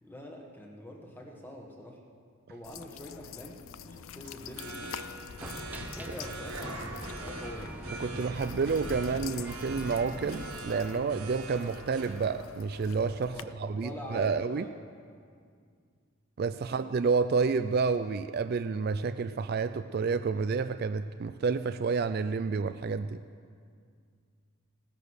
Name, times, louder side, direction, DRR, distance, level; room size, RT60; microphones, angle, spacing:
voice 1, 0.0-2.0 2.5-4.9 5.9-7.8 13.3-14.9 16.6-16.9, equal, 10° left, 0 dB, 1.4 m, -45 dB
sound 1, 2.6-13.4, left 7 dB, 65° left, 0.4 m, -46 dB
sound 2, 3.9-13.5, right 1 dB, 75° right, 1.4 m, -44 dB
sound 3, 5.4-10.6, right 1 dB, 5° right, 0.7 m, -42 dB
voice 2, 8.0-14.6 16.4-23.2, right 5 dB, 45° right, 10 dB, 0.3 m, -29 dB
17.0 x 10.0 x 6.4 m, 2.2 s
head